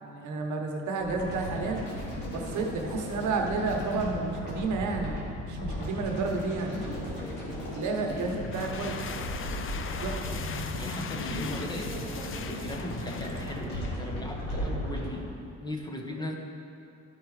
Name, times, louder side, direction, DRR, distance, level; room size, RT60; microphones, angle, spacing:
voice 1, 0.0-1.8 2.3-6.8 7.7-9.0 9.7-10.3, right 3 dB, 75° right, 2 dB, 1.1 m, -31 dB
sound 1, 1.0-15.1, left 1 dB, 90° left, 2.2 m, -35 dB
sound 2, 8.3-14.1, left 6 dB, 45° left, 0.5 m, -40 dB
voice 2, 10.8-11.9 12.4-16.4, left 1 dB, 15° left, 1 dB, 1.0 m, -38 dB
12.0 x 4.8 x 4.8 m, 2.7 s
cardioid pair, 90°, 30 cm